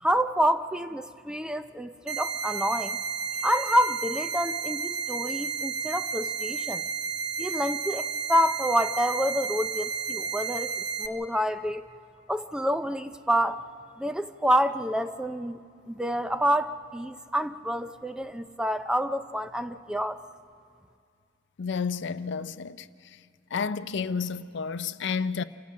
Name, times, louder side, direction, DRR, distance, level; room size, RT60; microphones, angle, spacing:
voice 1, 0.0-3.0 3.4-6.8 7.4-11.8 12.3-13.6 14.0-15.6 15.9-20.2, equal, 5° right, 0.5 m, -28 dB
sound 1, 2.1-11.1, right 6 dB, 65° right, 0.9 m, -32 dB
voice 2, 21.6-22.9 23.5-25.4, left 5 dB, 65° left, 0.5 m, -30 dB
28.0 x 15.0 x 6.3 m
head